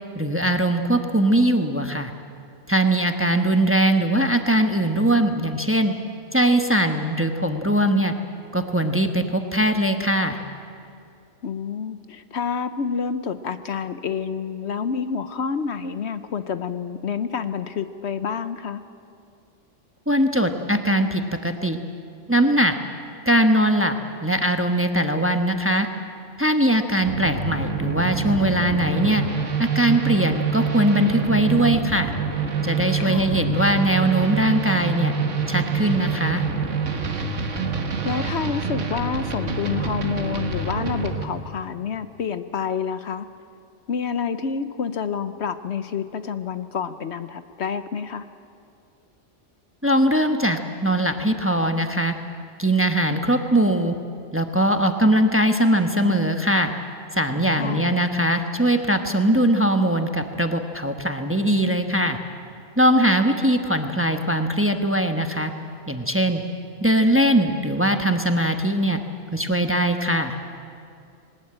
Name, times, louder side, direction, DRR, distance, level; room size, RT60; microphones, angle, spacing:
voice 1, 0.1-2.1 2.7-5.9 6.3-8.1 8.5-10.4 20.1-21.8 22.3-22.8 23.2-23.9 24.2-25.9 26.4-29.2 29.6-32.1 32.6-35.1 35.5-36.4 49.8-52.2 52.6-53.9 54.3-56.7 57.1-62.2 62.8-65.5 65.9-66.4 66.8-69.0 69.3-70.4, right 1 dB, 10° right, 6 dB, 1.1 m, -21 dB
voice 2, 11.4-18.8 33.0-33.4 38.0-43.3 43.9-48.3 57.6-58.0, left 6 dB, 65° left, 11 dB, 1.0 m, -28 dB
sound 1, 27.0-41.2, right 5 dB, 80° right, 1.8 m, -26 dB
21.0 x 19.5 x 8.9 m, 2.5 s
omnidirectional pair, 1.3 m